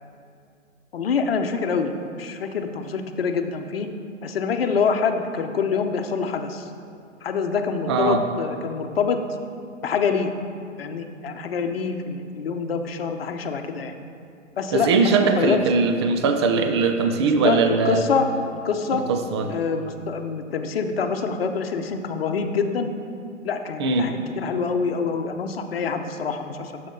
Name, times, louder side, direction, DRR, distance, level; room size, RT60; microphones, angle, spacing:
voice 1, 0.9-1.9 2.2-3.9 4.2-6.7 7.2-9.2 9.8-10.3 10.8-13.9 14.6-15.6 17.2-19.0 19.5-22.9 23.4-26.8, left 5 dB, 50° left, 6 dB, 1.0 m, -25 dB
voice 2, 7.9-8.2 14.7-18.0 18.9-19.5 23.8-24.1, right 4 dB, 20° right, 6 dB, 0.5 m, -21 dB
16.5 x 7.7 x 3.9 m, 2.4 s
figure-of-eight pair, 125°, 39 cm